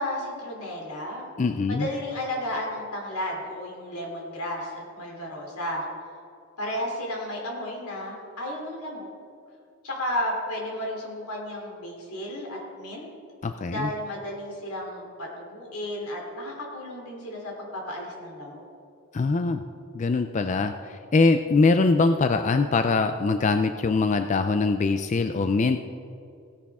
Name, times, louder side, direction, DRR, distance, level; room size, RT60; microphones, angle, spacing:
voice 1, 0.0-1.3 1.7-5.8 6.6-9.1 9.8-13.0 13.7-18.6, left 1 dB, 85° left, -1 dB, 3.3 m, -33 dB
voice 2, 1.4-1.9 13.4-13.9 19.1-19.6 19.9-25.8, left 3 dB, 35° left, 8 dB, 0.3 m, -23 dB
16.5 x 10.0 x 3.6 m, 2.5 s
head